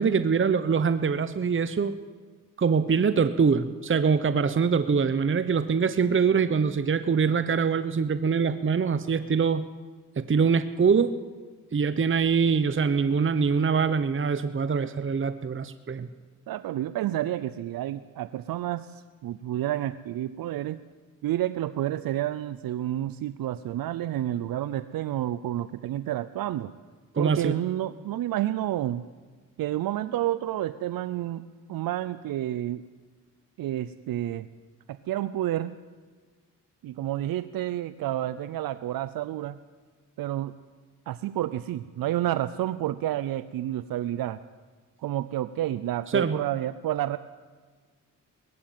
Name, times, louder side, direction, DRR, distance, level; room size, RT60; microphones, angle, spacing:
voice 1, 0.0-2.0 2.6-9.7 10.2-11.2 11.7-16.1 27.1-27.5 46.1-46.4, right 5 dB, 35° right, 12 dB, 0.9 m, -24 dB
voice 2, 16.5-20.8 21.2-26.7 27.2-29.0 29.6-32.8 33.6-34.5 34.9-35.8 36.8-39.6 40.2-40.5 41.1-44.4 45.0-47.2, right 13 dB, 85° right, 14 dB, 0.6 m, -30 dB
19.0 x 15.0 x 9.2 m, 1.5 s
cardioid pair, 65°, 34 cm